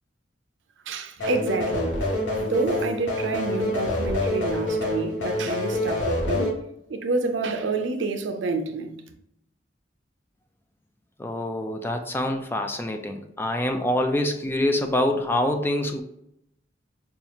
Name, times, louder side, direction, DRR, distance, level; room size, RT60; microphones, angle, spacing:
voice 1, 0.9-1.9 2.4-6.6 6.9-8.9, right 3 dB, 75° right, 0.5 m, -28 dB
sound 1, 1.2-6.5, left 1 dB, 80° left, 1.0 m, -26 dB
voice 2, 11.2-16.0, left 1 dB, 10° left, 0.3 m, -25 dB
5.2 x 2.4 x 2.9 m
head